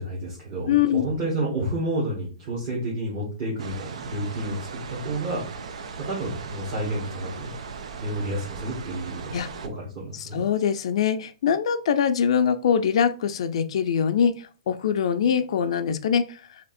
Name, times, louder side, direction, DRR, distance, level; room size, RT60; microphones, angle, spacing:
voice 1, 0.0-5.4 6.0-7.5 8.0-10.4, right 1 dB, 30° right, -6 dB, 1.5 m, -30 dB
voice 2, 0.7-1.1 9.3-9.5 10.3-14.3 14.7-16.4, left 8 dB, 55° left, 10 dB, 0.4 m, -23 dB
sound 1, 3.6-9.7, right 5 dB, 70° right, 0.6 m, -38 dB
3.4 x 2.8 x 4.1 m, 0.37 s
hypercardioid pair, 170°, 4 cm